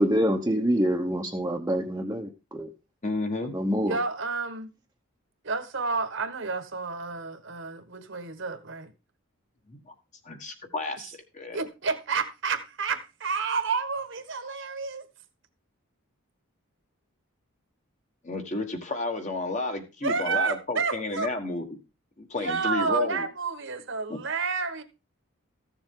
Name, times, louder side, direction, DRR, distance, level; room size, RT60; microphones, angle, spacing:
voice 1, 0.0-2.7 3.5-4.0, equal, 15° right, 0.9 m, -26 dB
voice 2, 3.0-3.6 9.7-9.8 10.3-11.6 18.2-21.8 22.2-23.3 24.1-24.2, left 2 dB, 35° left, 1.4 m, -32 dB
voice 3, 3.9-4.7 5.4-8.9 11.5-15.0 20.0-21.3 22.4-24.8, right 4 dB, 55° right, 1.3 m, -30 dB
14.5 x 7.2 x 3.7 m
head